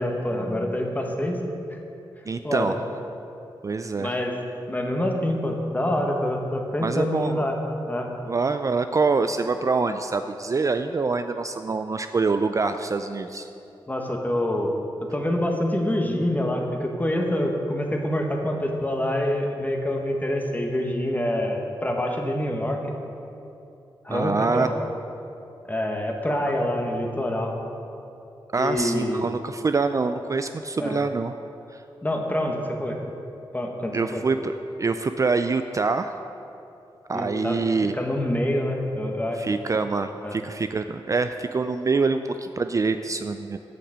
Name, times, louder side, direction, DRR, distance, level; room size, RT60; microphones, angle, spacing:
voice 1, 0.0-1.4 2.4-2.8 4.0-4.3 4.7-7.6 7.9-8.1 13.9-14.7 15.0-22.8 24.0-24.7 25.6-27.5 28.6-29.3 30.8-31.0 32.0-33.0 33.5-34.2 37.1-37.6 37.9-39.5 40.2-40.4, left 1 dB, 20° left, 2 dB, 1.4 m, -26 dB
voice 2, 2.3-2.7 3.6-4.1 6.8-7.5 8.3-13.5 24.1-24.7 28.5-31.3 33.9-36.1 37.1-37.9 39.4-43.6, right 4 dB, 35° right, 8 dB, 0.4 m, -25 dB
8.1 x 5.9 x 7.4 m, 2.8 s
cardioid pair, 50°, 9 cm